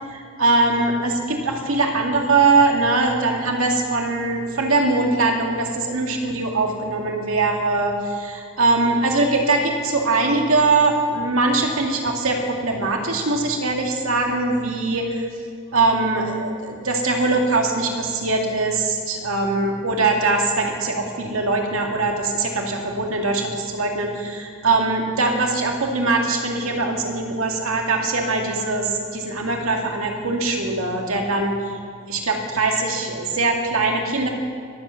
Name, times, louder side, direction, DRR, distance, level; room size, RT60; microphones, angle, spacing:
voice 1, 0.1-15.2 15.7-31.5 32.1-34.3, right 3 dB, 85° right, 1 dB, 2.1 m, -21 dB
21.0 x 7.9 x 7.0 m, 2.3 s
head